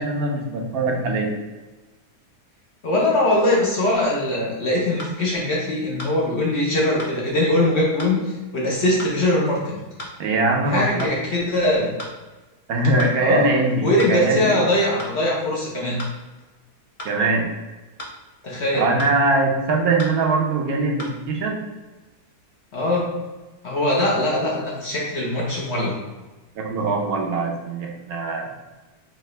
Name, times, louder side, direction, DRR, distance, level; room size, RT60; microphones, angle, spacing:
voice 1, 0.0-1.3 10.2-11.1 12.7-14.6 17.0-17.5 18.7-21.7 24.0-24.1 26.6-28.5, right 3 dB, 70° right, 0 dB, 1.1 m, -22 dB
voice 2, 2.8-9.8 10.7-11.9 13.2-13.5 13.8-16.0 18.4-18.9 22.7-23.1 23.6-26.0, left 1 dB, 50° left, -3 dB, 0.9 m, -21 dB
sound 1, 5.0-5.2 6.0-6.2 7.0-7.2 8.0-8.2 9.0-9.2 10.0-10.2 11.0-11.2 12.0-12.2 13.0-13.2 14.0-14.2 15.0-15.2 16.0-16.2 17.0-17.2 18.0-18.2 19.0-19.2 20.0-20.2 21.0-21.2, equal, 75° left, 0.3 m, -35 dB
4.7 x 2.5 x 3.1 m, 1.2 s
omnidirectional pair, 1.6 m